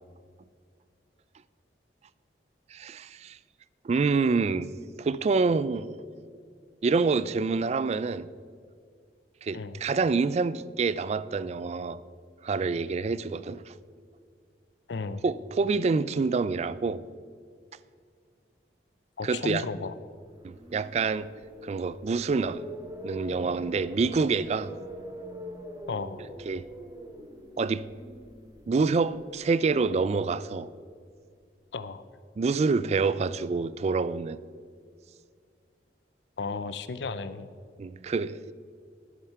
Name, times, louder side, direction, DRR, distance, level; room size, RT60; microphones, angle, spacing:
voice 1, 2.7-3.4 3.8-4.7 5.0-5.9 6.8-8.3 9.4-12.0 12.4-13.7 15.2-17.0 19.2-19.6 20.4-21.3 21.6-22.6 23.0-24.7 26.5-26.7 27.6-27.9 28.7-30.7 32.4-34.4 37.8-38.5, right 4 dB, 40° right, 0.3 m, -27 dB
voice 2, 14.9-15.2 19.2-19.9 25.9-26.2 31.7-32.0 36.4-37.5, left 4 dB, 75° left, 0.5 m, -34 dB
sound 1, 20.2-30.4, right 1 dB, 20° right, 1.1 m, -44 dB
11.5 x 11.0 x 4.7 m
head